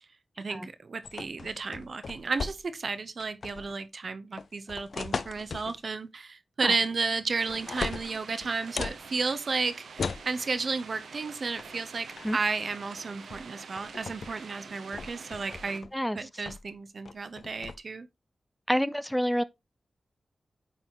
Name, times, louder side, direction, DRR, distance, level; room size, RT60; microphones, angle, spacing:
voice 1, 0.4-15.9 16.1-18.1, right 4 dB, 60° right, 0.7 m, -33 dB
sound 1, 1.0-2.9 3.2-3.8 4.4-5.8 6.8-7.2 7.5-9.0 10.0-10.3 11.6-11.8 12.1-12.4 13.3-13.5 13.8-14.3 14.7-15.9 16.5-16.7 17.1-17.8, left 5 dB, 75° left, 0.4 m, -37 dB
sound 2, 7.4-15.8, right 5 dB, 90° right, 0.8 m, -46 dB
voice 2, 18.7-19.4, equal, 5° left, 0.4 m, -27 dB
9.2 x 4.1 x 2.9 m
cardioid pair, 50°, 0 cm